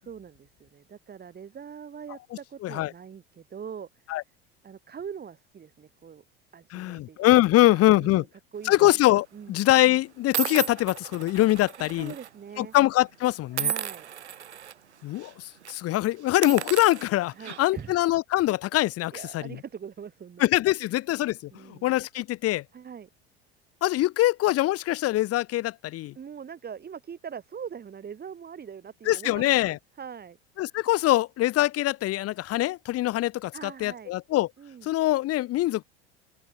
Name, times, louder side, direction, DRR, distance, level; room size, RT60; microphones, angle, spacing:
voice 1, 0.0-3.9 4.6-6.2 6.5-7.2 7.7-8.3 8.5-8.9 9.3-9.6 11.8-12.7 13.5-14.1 17.4-17.9 19.1-20.5 21.5-21.9 22.7-23.1 26.1-30.4 33.5-34.1 34.6-34.9, right 7 dB, 30° right, 6.4 m, -42 dB
voice 2, 2.6-2.9 4.1-4.2 6.7-8.2 8.7-12.1 12.6-13.7 15.0-19.6 20.4-22.6 23.8-26.1 29.1-29.8 30.6-34.5 34.8-35.8, left 16 dB, 45° left, 1.9 m, -23 dB
sound 1, 8.7-9.0 9.7-9.8 10.3-12.3 12.6-12.8 13.5-14.7 15.2-15.3 15.6-15.8 16.3-17.9, right 9 dB, 85° right, 1.2 m, -34 dB
open air
hypercardioid pair, 80°, 33 cm